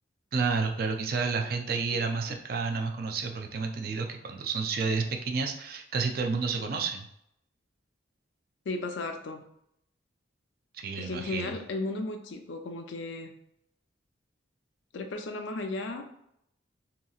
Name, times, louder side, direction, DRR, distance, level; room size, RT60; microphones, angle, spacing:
voice 1, 0.3-7.1 10.7-11.6, right 4 dB, 50° right, 4 dB, 0.3 m, -30 dB
voice 2, 8.7-9.4 11.0-13.3 14.9-16.0, left 2 dB, 75° left, 5 dB, 0.4 m, -35 dB
2.8 x 2.7 x 2.3 m, 0.75 s
head